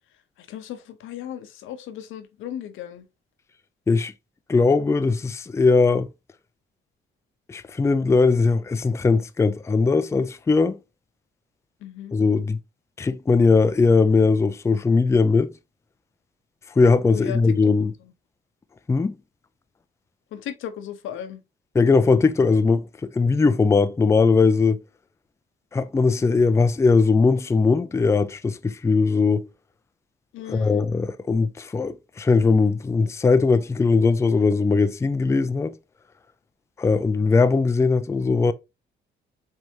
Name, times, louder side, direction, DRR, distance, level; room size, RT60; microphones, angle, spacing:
voice 1, 0.4-3.1 11.8-12.1 17.1-17.4 18.0-18.1 20.3-21.4 30.3-30.8, left 10 dB, 85° left, 0.7 m, -36 dB
voice 2, 4.5-6.1 7.5-10.8 12.1-12.6 13.0-15.5 16.8-17.9 18.9-19.1 21.8-22.9 23.1-24.8 25.7-29.5 30.5-35.7 36.8-38.5, left 4 dB, 15° left, 0.4 m, -19 dB
4.5 x 3.3 x 2.7 m
cardioid pair, 90°, 20 cm